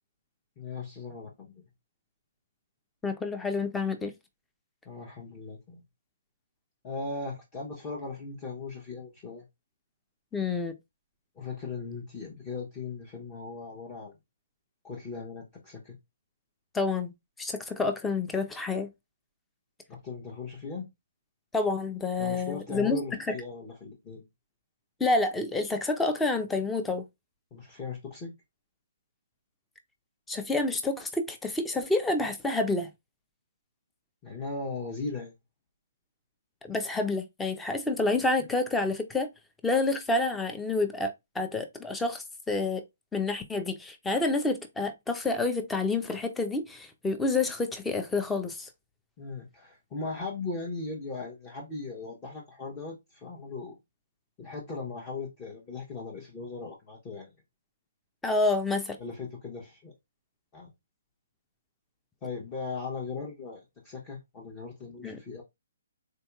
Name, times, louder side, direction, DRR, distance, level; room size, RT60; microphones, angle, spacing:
voice 1, 0.6-1.6 4.8-5.8 6.8-9.5 11.3-14.1 14.8-16.0 19.9-20.9 22.2-24.2 27.5-28.3 34.2-35.3 49.2-53.8 54.4-57.3 59.0-59.9 60.5-60.7 62.2-65.4, left 4 dB, 25° left, 0.9 m, -38 dB
voice 2, 3.0-4.1 10.3-10.7 16.7-17.1 17.4-18.9 21.5-23.0 23.3-23.4 25.0-27.0 30.3-32.9 36.6-39.3 39.6-42.8 43.1-48.7 58.2-59.0 65.0-65.2, left 3 dB, 5° left, 0.5 m, -28 dB
3.8 x 2.7 x 2.3 m
figure-of-eight pair, 135°, 0 cm